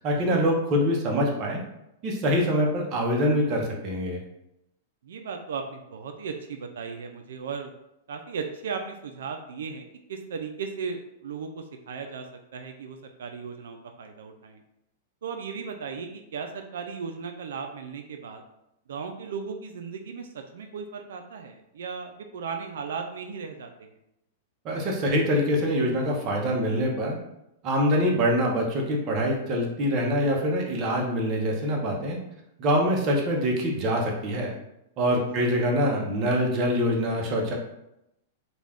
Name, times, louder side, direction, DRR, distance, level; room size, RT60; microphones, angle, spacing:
voice 1, 0.0-1.6 2.0-4.2 24.6-27.2 27.6-32.2 32.6-34.5 35.0-37.5, equal, 30° right, 0 dB, 0.6 m, -24 dB
voice 2, 5.0-7.7 8.1-12.3 12.5-14.6 15.2-18.4 18.9-23.9 35.4-35.5, right 5 dB, 85° right, 5 dB, 0.3 m, -36 dB
2.4 x 2.2 x 3.3 m, 0.84 s
supercardioid pair, 160°, 0 cm